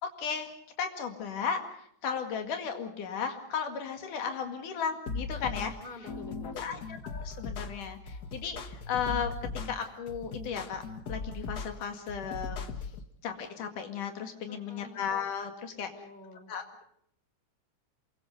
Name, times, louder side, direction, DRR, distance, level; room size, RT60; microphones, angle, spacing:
voice 1, 0.0-5.8 6.6-10.8 11.1-12.6 13.2-15.9 16.5-16.8, left 6 dB, 90° left, 5 dB, 3.7 m, -35 dB
sound 1, 5.1-13.0, left 4 dB, 50° left, 1.3 m, -38 dB
voice 2, 5.8-6.9 14.5-15.1 15.7-16.5, left 2 dB, 15° left, 7 dB, 3.2 m, -49 dB
28.0 x 23.0 x 5.4 m, 0.67 s
omnidirectional pair, 3.5 m